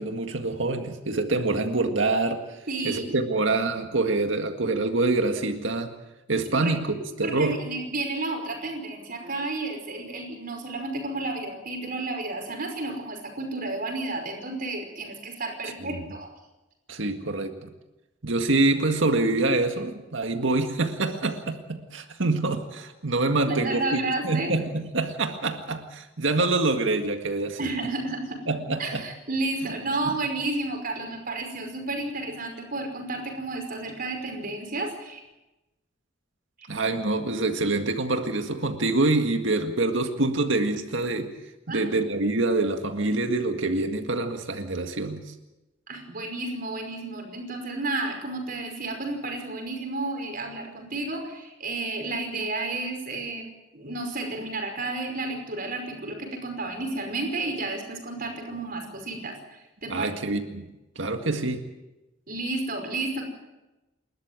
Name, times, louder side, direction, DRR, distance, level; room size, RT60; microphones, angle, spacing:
voice 1, 0.0-2.4 2.8-5.9 6.3-6.9 7.2-7.6 15.8-16.0 16.9-17.7 18.2-27.7 28.5-29.0 29.6-29.7 36.7-41.3 41.7-45.3 59.9-60.7 61.0-61.6, right 2 dB, 75° right, 5 dB, 1.9 m, -26 dB
voice 2, 2.7-3.0 6.6-6.7 7.2-16.3 23.4-24.6 27.6-28.4 28.8-35.2 41.7-41.9 45.9-53.5 53.7-60.1 62.3-63.2, right 2 dB, 50° right, 4 dB, 5.4 m, -31 dB
29.0 x 13.0 x 9.0 m, 1.0 s
head